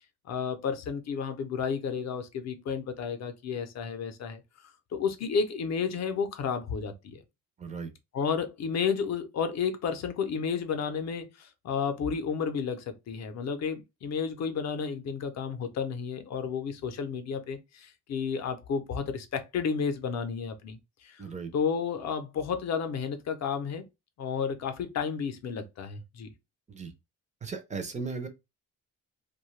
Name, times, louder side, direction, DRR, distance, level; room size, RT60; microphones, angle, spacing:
voice 1, 0.3-7.2 8.1-21.2 21.5-23.8 24.2-26.3, left 6 dB, 50° left, 0.5 m, -32 dB
voice 2, 7.6-7.9 21.2-21.5 26.7-26.9 27.4-28.3, right 4 dB, 20° right, 0.4 m, -36 dB
2.7 x 2.2 x 3.0 m
cardioid pair, 170°, 35 cm